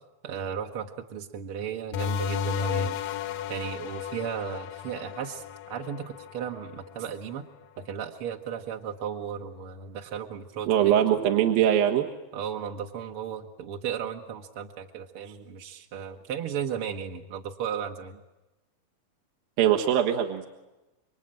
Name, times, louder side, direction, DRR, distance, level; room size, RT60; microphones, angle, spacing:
voice 1, 0.2-3.0 3.5-7.4 7.8-11.2 12.3-18.2, right 8 dB, 55° right, 2 dB, 1.6 m, -35 dB
sound 1, 1.9-7.1, left 6 dB, 70° left, 2.5 m, -33 dB
voice 2, 10.7-12.1 19.6-20.5, right 10 dB, 75° right, 3 dB, 3.3 m, -22 dB
28.0 x 24.0 x 9.0 m, 1.0 s
omnidirectional pair, 4.3 m